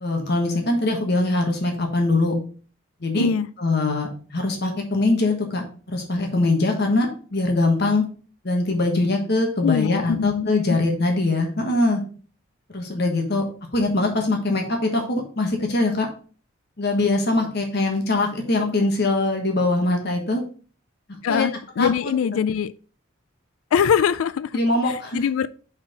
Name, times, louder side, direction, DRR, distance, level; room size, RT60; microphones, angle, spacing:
voice 1, 0.0-2.3 3.0-3.3 3.6-8.0 8.4-12.0 12.7-13.4 13.7-16.1 16.8-20.4 21.3-21.5 21.8-22.1 24.5-25.2, left 2 dB, 50° left, 1.3 m, -22 dB
voice 2, 3.2-3.5 9.6-10.8 21.2-22.7 23.7-24.6 24.9-25.5, left 7 dB, 75° left, 0.3 m, -23 dB
5.7 x 4.4 x 5.0 m
head